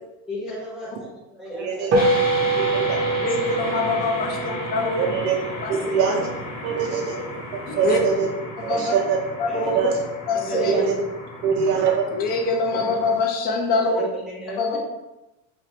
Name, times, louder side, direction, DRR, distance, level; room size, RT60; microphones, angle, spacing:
voice 1, 0.3-2.0 3.1-3.2 3.8-4.2 5.8-6.1 6.6-6.9 7.7-8.0 8.7-8.9 9.5-9.7 10.3-11.1 12.7-13.1 13.8-14.8, left 1 dB, ahead, -6 dB, 0.8 m, -35 dB
voice 2, 1.6-1.9 2.6-3.0 5.0-5.4 5.7-6.3 6.6-7.3 7.8-8.3 8.6-9.3 9.7-9.9 10.5-10.9 11.4-12.0, right 6 dB, 80° right, 0 dB, 0.5 m, -23 dB
sound 1, 1.9-13.2, left 1 dB, 50° left, 1.1 m, -34 dB
sound 2, 1.9-6.6, right 3 dB, 35° right, 0.6 m, -25 dB
voice 3, 3.2-5.0 5.6-5.7 7.7-8.0 8.6-8.9 9.4-9.7 10.3-10.7 12.1-14.0 14.6-14.8, left 3 dB, 25° left, 1 dB, 0.4 m, -24 dB
3.2 x 2.0 x 2.7 m, 0.98 s
supercardioid pair, 130°, 37 cm